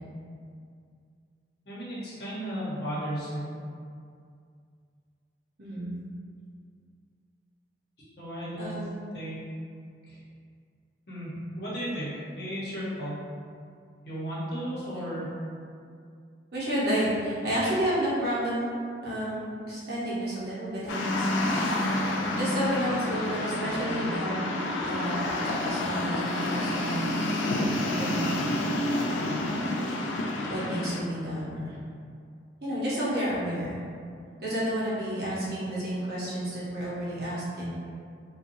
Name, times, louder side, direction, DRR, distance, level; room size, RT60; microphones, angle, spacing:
voice 1, 1.7-3.5 8.2-8.7 9.1-9.4 10.1-10.2 11.1-13.2 14.0-15.3 23.8-24.0, equal, 60° left, -9 dB, 0.9 m, -34 dB
voice 2, 5.6-5.9 8.6-8.9 15.0-15.1 16.5-18.7 19.0-21.3 22.4-24.4 24.7-27.1 27.4-28.7 29.1-29.4 30.5-31.8 32.6-33.8 34.4-37.7, equal, 55° right, -9 dB, 0.7 m, -31 dB
sound 1, 20.9-31.0, left 1 dB, 90° left, 0.3 m, -29 dB
2.8 x 2.3 x 2.6 m, 2.3 s
head